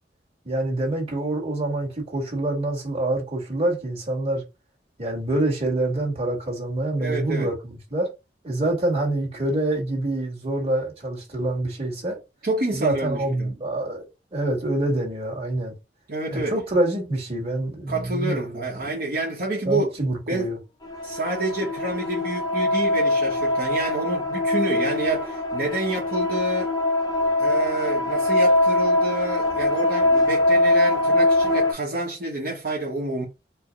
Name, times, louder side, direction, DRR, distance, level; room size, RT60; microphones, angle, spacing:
voice 1, 0.4-4.4 5.0-8.1 8.4-12.2 12.7-14.0 14.3-15.7 16.3-18.6 19.6-20.6, right 1 dB, 35° right, 1.6 m, -26 dB
voice 2, 7.0-7.5 12.4-13.6 16.1-16.6 17.9-19.9 20.3-20.5 21.0-26.7 27.4-33.3, right 2 dB, 55° right, 1.1 m, -28 dB
sound 1, 20.8-31.7, left 1 dB, 20° left, 0.7 m, -22 dB
4.5 x 2.1 x 3.5 m
head